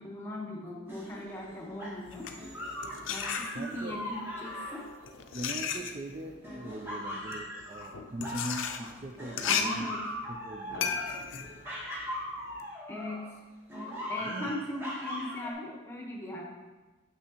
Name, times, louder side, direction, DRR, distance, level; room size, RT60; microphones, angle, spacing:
voice 1, 0.0-2.3 3.1-4.8 9.5-10.0 12.9-13.4 14.1-16.4, left 1 dB, 15° left, -2 dB, 1.0 m, -39 dB
sound 1, 0.9-5.9 6.4-8.9 9.2-13.3 13.7-15.5, left 1 dB, 10° right, 1.2 m, -40 dB
sound 2, 2.0-4.0 4.7-12.6, left 7 dB, 90° left, 0.5 m, -35 dB
voice 2, 3.5-4.0 5.3-9.9 10.3-10.9 14.2-14.5, right 1 dB, 35° right, 2 dB, 0.4 m, -40 dB
6.2 x 6.1 x 2.9 m, 1.2 s
head